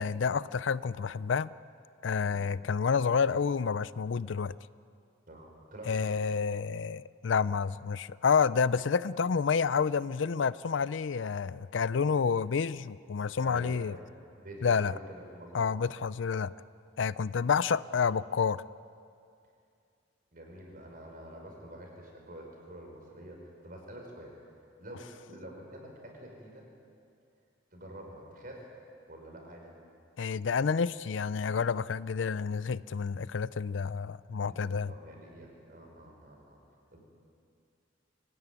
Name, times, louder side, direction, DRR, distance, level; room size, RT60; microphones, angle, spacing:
voice 1, 0.0-1.5 2.0-4.6 5.9-14.0 14.6-14.9 15.5-16.5 17.0-18.6 30.2-34.9, left 6 dB, 75° left, 18 dB, 0.5 m, -29 dB
voice 2, 5.3-6.1 13.4-14.1 14.3-15.8 20.3-24.3 24.8-26.7 27.7-28.7 29.1-29.7 34.5-36.6 36.9-37.1, right 1 dB, 45° right, 0 dB, 5.5 m, -47 dB
24.0 x 16.5 x 9.8 m, 2.5 s
head